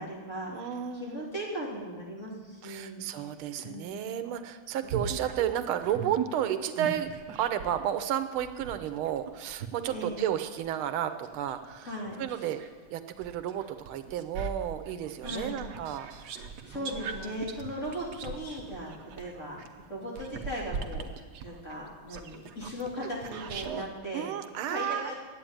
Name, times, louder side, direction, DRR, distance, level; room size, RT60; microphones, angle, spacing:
voice 1, 0.0-3.0 3.6-4.1 9.9-10.3 11.8-12.5 15.2-15.6 16.6-19.6 19.9-24.3 24.7-25.1, equal, 35° left, -4 dB, 3.0 m, -38 dB
voice 2, 0.5-1.3 2.6-7.1 7.3-11.9 12.2-12.6 12.9-16.1 16.7-17.3 24.1-25.1, right 10 dB, 85° right, 10 dB, 1.6 m, -32 dB
sound 1, 4.8-7.8 8.4-12.7 13.2-23.9, right 6 dB, 60° right, 1.2 m, -39 dB
10.5 x 8.4 x 8.7 m, 1.5 s
omnidirectional pair, 2.3 m